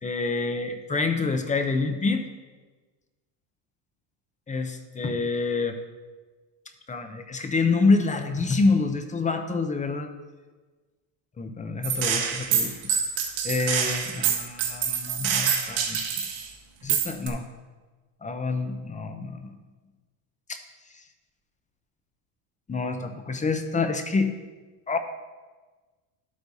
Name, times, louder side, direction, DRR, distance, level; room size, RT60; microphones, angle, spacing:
voice 1, 0.0-2.3 4.5-5.8 6.9-10.1 11.4-12.7 13.4-16.1 16.8-17.4 18.2-19.5 20.5-20.6 22.7-24.3 24.9-25.0, left 3 dB, 15° left, 7 dB, 0.5 m, -27 dB
Gunshot gunfire, 11.8-16.4 16.9-17.3, right 7 dB, 70° right, 1.6 m, -26 dB
11.5 x 8.1 x 2.7 m, 1.3 s
cardioid pair, 130°, 47 cm